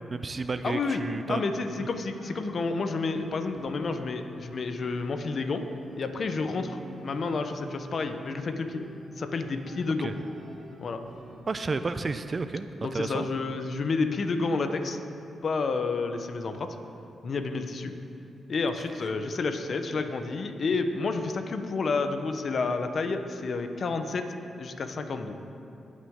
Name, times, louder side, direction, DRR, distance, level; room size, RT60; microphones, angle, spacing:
voice 1, 0.1-1.4 1.8-1.9 10.0-10.1 11.5-13.3, right 3 dB, 45° right, 10 dB, 0.5 m, -31 dB
voice 2, 0.6-1.0 1.3-5.6 6.0-8.8 9.2-10.2 10.8-11.0 12.8-15.0 15.4-16.8 17.2-17.9 18.5-24.3 24.6-25.4, left 4 dB, 60° left, 7 dB, 0.9 m, -30 dB
sound 1, 2.2-11.4, right 2 dB, 60° right, 2.1 m, -48 dB
19.0 x 6.4 x 3.7 m, 2.7 s
supercardioid pair, 50°, 0 cm